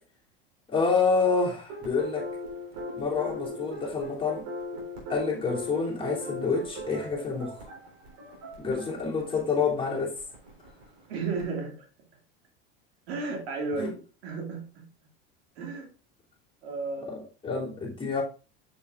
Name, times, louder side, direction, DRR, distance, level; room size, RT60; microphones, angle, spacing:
voice 1, 0.7-2.3 2.9-4.5 5.1-7.7 8.6-10.1 13.7-13.9 17.1-18.2, left 4 dB, 15° left, 2.9 m, -28 dB
sound 1, 1.7-11.5, equal, 65° right, 3.8 m, -40 dB
voice 2, 11.1-11.7 13.1-14.9 15.6-15.9 16.6-17.2, right 4 dB, 85° right, 2.3 m, -33 dB
7.0 x 6.6 x 2.5 m
supercardioid pair, 105°, 30 cm